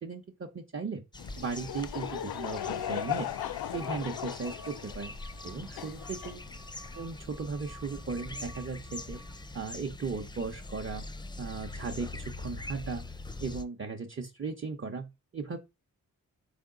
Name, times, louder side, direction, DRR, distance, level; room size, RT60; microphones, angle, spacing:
voice 1, 0.0-1.0 1.4-3.3 3.7-5.2 5.4-6.4 6.9-9.2 9.5-11.1 11.4-13.1 13.4-15.6, right 4 dB, 35° right, 0.8 m, -37 dB
sound 1, 1.1-13.6, left 2 dB, 10° left, 0.5 m, -43 dB
Laughter / Crowd, 1.2-6.9, left 11 dB, 75° left, 0.5 m, -37 dB
sound 2, 2.5-9.6, right 2 dB, 75° right, 1.1 m, -55 dB
3.9 x 3.5 x 3.7 m
cardioid pair, 45°, 37 cm